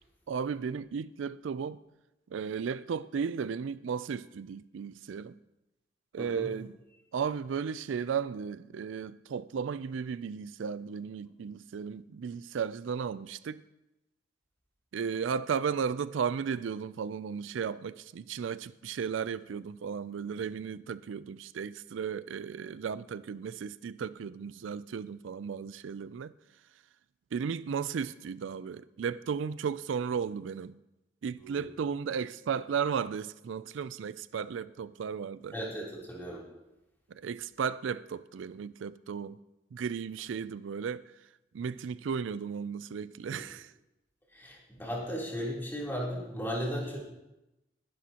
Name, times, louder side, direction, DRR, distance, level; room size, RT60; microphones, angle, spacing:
voice 1, 0.3-1.8 2.3-5.3 6.1-6.8 7.1-13.6 14.9-26.3 27.3-30.8 31.2-35.6 37.1-39.4 39.7-41.1 41.5-43.7, right 6 dB, 85° right, 0.4 m, -35 dB
voice 2, 6.2-6.5 31.4-31.6 35.5-36.4 43.3-43.4 44.3-47.0, equal, 10° left, 3.4 m, -36 dB
20.0 x 11.0 x 2.9 m
head